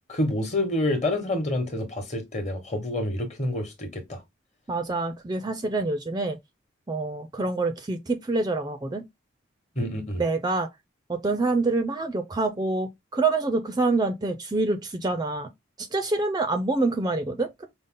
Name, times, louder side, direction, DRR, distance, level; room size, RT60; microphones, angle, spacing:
voice 1, 0.1-4.2 9.8-10.2, left 1 dB, 35° left, 1.1 m, -28 dB
voice 2, 4.7-6.4 6.9-9.0 10.2-10.7 11.1-15.5 15.8-17.7, right 3 dB, 20° right, 0.4 m, -26 dB
5.3 x 2.0 x 3.6 m
head